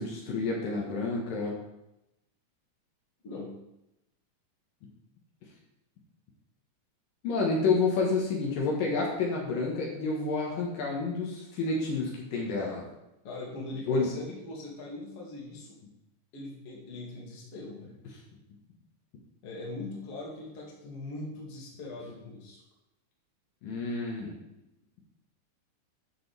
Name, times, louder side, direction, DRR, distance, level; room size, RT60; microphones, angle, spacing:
voice 1, 0.0-1.5 7.2-12.8 13.9-14.1 23.6-24.3, left 3 dB, 75° left, -2 dB, 3.1 m, -29 dB
voice 2, 3.2-3.6 13.2-15.8 16.3-17.9 19.4-22.6, left 2 dB, 45° left, -3 dB, 3.0 m, -41 dB
12.0 x 6.9 x 3.5 m, 0.87 s
omnidirectional pair, 4.0 m